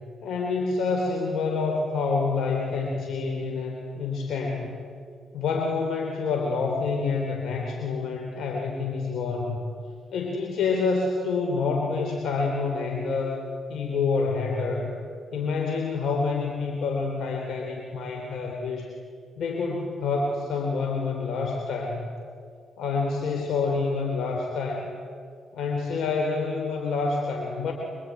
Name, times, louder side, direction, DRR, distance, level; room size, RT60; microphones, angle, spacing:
voice 1, 0.2-4.7 5.3-9.6 10.1-14.9 15.3-18.9 19.4-22.1 22.8-24.9 25.5-27.7, left 4 dB, 75° left, 2 dB, 3.6 m, -27 dB
26.0 x 24.0 x 9.5 m, 2.3 s
cardioid pair, 80°, 0 cm